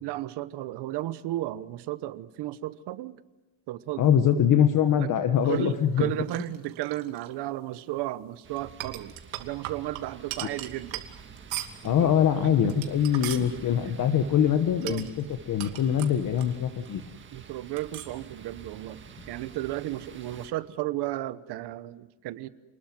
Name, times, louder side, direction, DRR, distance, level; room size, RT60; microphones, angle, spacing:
voice 1, 0.0-3.2 3.7-4.2 4.9-11.0 11.8-12.9 13.3-13.5 13.9-14.0 14.8-15.1 17.3-19.0 19.3-22.5, right 15 dB, 60° right, 14 dB, 1.2 m, -34 dB
voice 2, 4.0-6.1 11.8-17.0, left 9 dB, 40° left, 8 dB, 1.4 m, -23 dB
sound 1, 5.4-7.3 8.6-11.9 12.5-13.5 14.8-16.9 17.2-17.3 17.8-18.2, right 13 dB, 75° right, 2.7 m, -40 dB
sound 2, 8.4-20.5, right 6 dB, 25° right, 1.8 m, -49 dB
29.0 x 21.0 x 7.8 m, 1.1 s
cardioid pair, 165°, 46 cm